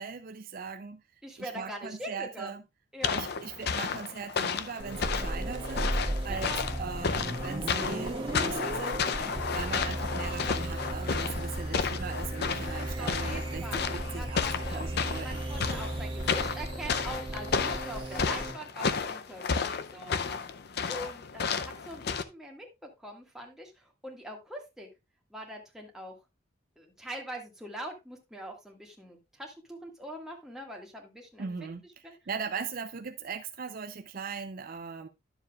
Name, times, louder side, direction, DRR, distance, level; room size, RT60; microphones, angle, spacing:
voice 1, 0.0-1.0 1.4-2.6 3.1-5.9 6.2-9.0 9.5-14.5 14.7-15.5 31.4-35.1, right 5 dB, 50° right, 9 dB, 0.5 m, -39 dB
voice 2, 1.2-2.6 2.9-3.2 6.3-6.7 13.0-14.9 15.2-20.4 20.9-24.9 25.3-26.2 26.8-31.7 32.0-32.2, equal, 5° right, -1 dB, 1.8 m, -43 dB
sound 1, 3.0-22.2, left 5 dB, 55° left, 0.5 m, -32 dB
sound 2, 4.8-18.5, right 1 dB, 25° right, 1.8 m, -35 dB
11.0 x 7.1 x 2.4 m, 0.24 s
head